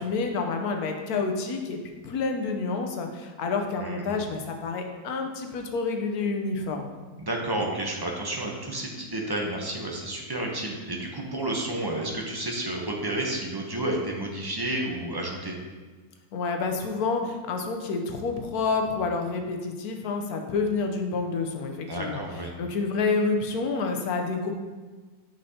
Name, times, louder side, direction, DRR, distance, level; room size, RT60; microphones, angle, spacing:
voice 1, 0.0-6.9 16.3-22.2 22.6-24.5, left 4 dB, 85° left, 4 dB, 1.2 m, -28 dB
voice 2, 3.8-4.2 7.2-15.5 21.9-22.5, right 1 dB, 25° right, 0 dB, 0.5 m, -31 dB
8.3 x 5.6 x 2.8 m, 1.3 s
omnidirectional pair, 1.6 m